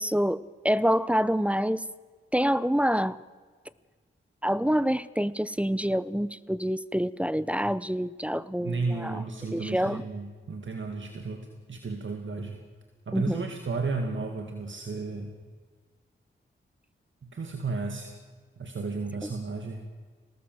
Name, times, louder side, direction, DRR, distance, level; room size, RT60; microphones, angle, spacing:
voice 1, 0.0-1.8 2.3-3.2 4.4-9.2 9.5-10.1 13.1-13.4 19.2-19.3, equal, 5° right, 18 dB, 0.8 m, -27 dB
voice 2, 8.6-12.6 13.1-15.3 17.2-18.1 18.6-19.8, right 3 dB, 65° right, 4 dB, 2.3 m, -33 dB
22.0 x 18.5 x 7.8 m, 1.5 s
cardioid pair, 55°, 21 cm